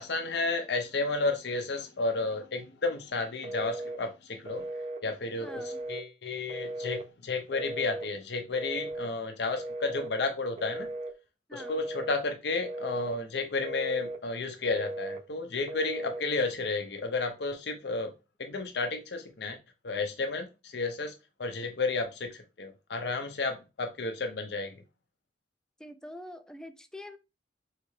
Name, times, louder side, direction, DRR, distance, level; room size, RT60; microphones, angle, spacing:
voice 1, 0.0-4.7 5.0-10.9 11.5-18.1 18.4-19.6 19.8-21.1 21.4-24.8, left 3 dB, 65° left, 0.7 m, -32 dB
Telephone, 3.4-4.0 4.5-5.0 5.5-6.0 6.5-7.1 7.5-8.1 8.5-9.1 9.6-10.1 10.6-11.1 11.6-12.2 12.6-13.2 13.6-14.2 14.7-15.2 15.7-16.2, right 2 dB, 40° right, 0.6 m, -37 dB
voice 2, 5.4-5.8 11.5-11.8 25.8-27.2, left 1 dB, 5° left, 0.3 m, -45 dB
4.6 x 3.3 x 3.1 m
head